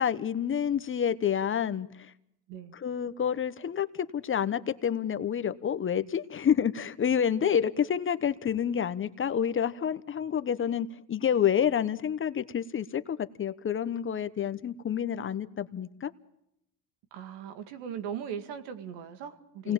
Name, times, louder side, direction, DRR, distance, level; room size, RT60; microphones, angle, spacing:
voice 1, 0.0-2.1 2.7-16.1 19.6-19.7, left 8 dB, 30° left, 12 dB, 0.9 m, -28 dB
voice 2, 17.1-19.7, right 8 dB, 80° right, 9 dB, 2.4 m, -39 dB
28.5 x 19.0 x 7.3 m, 0.81 s
cardioid pair, 120°, 40 cm